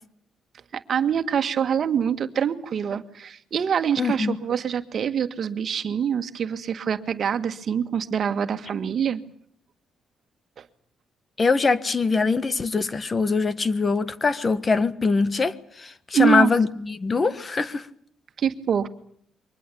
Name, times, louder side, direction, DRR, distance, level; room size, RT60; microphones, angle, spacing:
voice 1, 0.7-9.2 10.6-10.7 16.1-16.5 18.4-18.9, right 8 dB, 55° right, 1.7 m, -25 dB
voice 2, 4.0-4.4 11.4-17.9, left 4 dB, 35° left, 1.5 m, -23 dB
24.0 x 20.0 x 8.5 m
cardioid pair, 90°, 0 cm